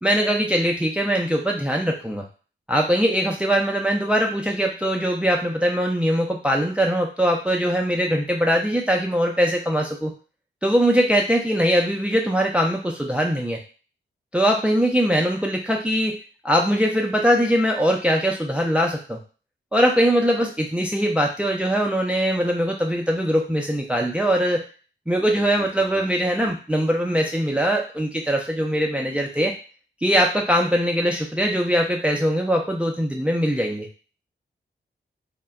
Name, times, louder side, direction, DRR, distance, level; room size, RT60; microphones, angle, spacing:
voice 1, 0.0-2.2 2.7-10.1 10.6-13.6 14.3-16.2 16.4-19.2 19.7-24.6 25.1-29.5 30.0-33.9, equal, 5° right, 0 dB, 0.4 m, -21 dB
2.1 x 2.1 x 3.5 m, 0.37 s
cardioid pair, 50°, 20 cm